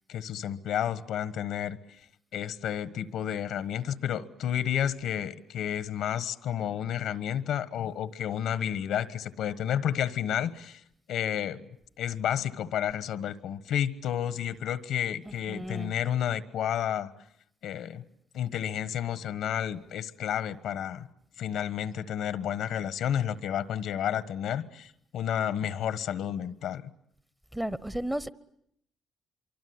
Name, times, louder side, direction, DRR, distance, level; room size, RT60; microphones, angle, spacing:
voice 1, 0.1-1.8 2.3-10.8 11.1-11.7 12.0-17.1 17.6-18.0 18.3-21.1 21.4-26.9, left 10 dB, 80° left, 15 dB, 1.3 m, -31 dB
voice 2, 15.2-15.9 27.5-28.3, right 1 dB, 5° right, 17 dB, 1.0 m, -34 dB
24.5 x 24.0 x 9.6 m, 0.72 s
cardioid pair, 90°, 0 cm